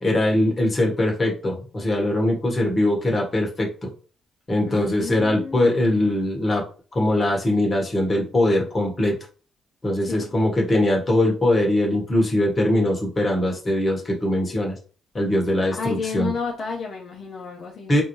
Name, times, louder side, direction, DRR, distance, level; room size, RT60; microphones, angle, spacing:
voice 1, 0.0-3.9 4.5-6.6 6.9-9.2 9.8-14.8 15.1-16.3 17.9-18.0, left 1 dB, 25° left, 1.3 m, -21 dB
voice 2, 4.7-6.2 10.0-10.3 15.7-18.0, left 5 dB, 60° left, 0.7 m, -32 dB
4.0 x 2.7 x 3.1 m
cardioid pair, 90°, 0 cm